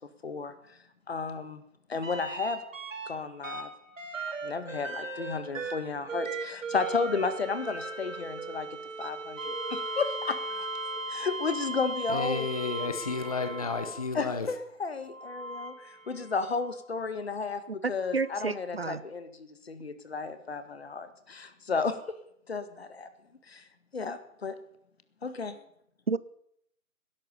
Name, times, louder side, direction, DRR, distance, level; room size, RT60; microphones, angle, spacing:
voice 1, 0.2-0.8 1.1-1.6 1.9-2.6 3.1-3.7 4.4-10.7 11.1-12.5 14.1-22.2 22.5-23.1 23.5-23.7 23.9-24.6 25.2-25.6, left 4 dB, 50° left, 1.8 m, -33 dB
sound 1, 2.0-3.1 3.4-14.2 15.1-16.6 18.3-18.4, right 2 dB, 65° right, 3.3 m, -37 dB
voice 2, 12.1-14.5, left 4 dB, 25° left, 0.9 m, -32 dB
voice 3, 17.7-19.0 26.1-26.2, right 4 dB, 50° right, 0.6 m, -31 dB
18.5 x 11.0 x 6.9 m
hypercardioid pair, 170°, 41 cm